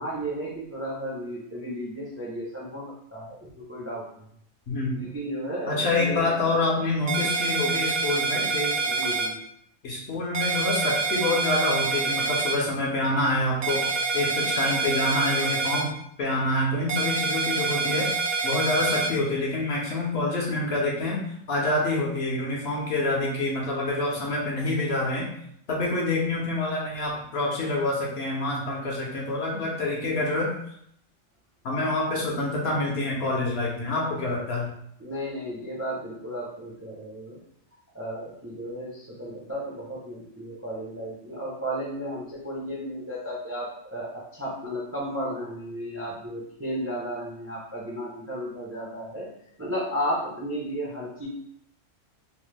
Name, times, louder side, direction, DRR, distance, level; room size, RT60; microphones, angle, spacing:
voice 1, 0.0-4.2 5.0-6.3 8.9-9.4 35.0-37.4 37.9-49.3 49.6-51.3, equal, 20° right, -5 dB, 0.3 m, -34 dB
voice 2, 4.7-5.0 5.7-8.7 9.8-13.8 14.1-15.9 16.2-18.1 18.4-21.2 21.5-25.3 25.7-30.5 31.6-34.7, left 2 dB, 60° left, -2 dB, 0.8 m, -26 dB
sound 1, 7.1-9.3 10.3-12.5 13.6-15.8 16.9-19.1, right 4 dB, 70° right, 0.9 m, -26 dB
2.9 x 2.0 x 3.2 m, 0.71 s
omnidirectional pair, 1.3 m